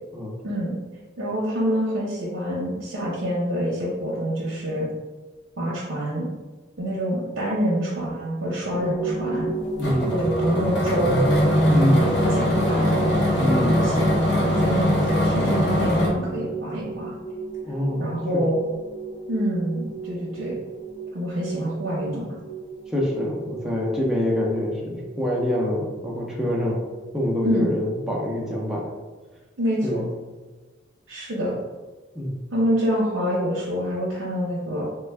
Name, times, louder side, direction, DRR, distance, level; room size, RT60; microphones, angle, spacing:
voice 1, 0.4-0.8 1.2-4.9 5.6-6.3 6.8-9.5 10.1-11.4 11.9-13.1 13.6-17.1 18.0-18.7 19.3-20.6 21.1-22.3 27.4-27.7 29.6-30.0 31.1-31.5 32.5-34.8, equal, 75° right, -6 dB, 0.7 m, -26 dB
sound 1, 8.7-28.5, right 4 dB, 20° left, 1.0 m, -34 dB
sound 2, 9.8-16.1, left 1 dB, 60° left, 0.7 m, -21 dB
voice 2, 9.8-10.1 11.7-12.0 13.4-13.8 17.6-18.0 18.3-18.4 22.9-26.8 27.1-28.8 29.8-30.0 32.1-32.3, left 1 dB, 5° right, -4 dB, 0.5 m, -25 dB
3.3 x 2.2 x 3.3 m, 1.3 s
head